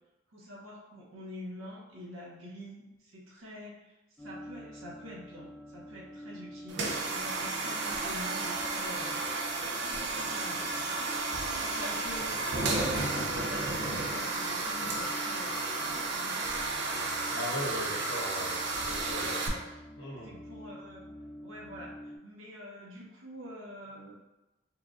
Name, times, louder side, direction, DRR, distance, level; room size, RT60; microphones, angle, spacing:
voice 1, 0.3-9.2 9.8-11.1 11.6-16.7 17.8-18.0 18.7-19.8 20.2-21.0 21.4-24.2, equal, 80° right, -4 dB, 0.9 m, -46 dB
sound 1, 4.2-22.2, left 1 dB, 5° left, 0.5 m, -48 dB
sound 2, 6.7-19.5, right 3 dB, 60° right, 0.5 m, -32 dB
voice 2, 17.3-19.4 20.0-20.3, left 1 dB, 80° left, -5 dB, 1.2 m, -38 dB
4.4 x 2.3 x 2.5 m, 0.97 s
head